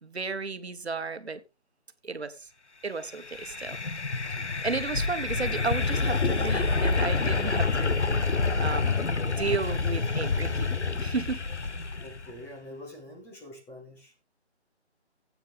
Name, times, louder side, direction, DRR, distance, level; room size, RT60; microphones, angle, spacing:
voice 1, 0.0-1.4 2.0-2.5 2.8-3.8 4.6-8.0 8.6-11.4, right 4 dB, 65° right, 1.4 m, -33 dB
sound 1, 3.1-12.3, left 4 dB, 80° left, 1.3 m, -28 dB
voice 2, 12.0-14.1, left 1 dB, 5° left, 1.7 m, -45 dB
14.0 x 8.6 x 3.4 m
figure-of-eight pair, 155°, 34 cm